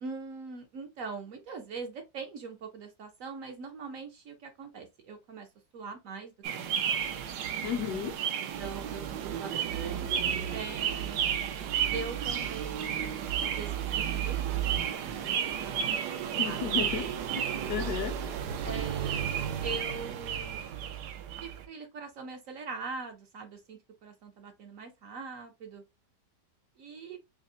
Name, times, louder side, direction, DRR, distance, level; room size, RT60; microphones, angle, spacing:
voice 1, 0.0-5.5 5.7-7.1 8.4-11.3 11.9-16.6 18.6-19.3 19.6-20.8 21.4-25.8 26.8-27.2, right 4 dB, 65° right, 0.9 m, -42 dB
sound 1, 6.4-21.6, right 8 dB, 80° right, 1.2 m, -32 dB
voice 2, 7.6-8.2 16.4-18.2, left 8 dB, 70° left, 1.1 m, -34 dB
5.0 x 2.0 x 2.6 m
omnidirectional pair, 1.8 m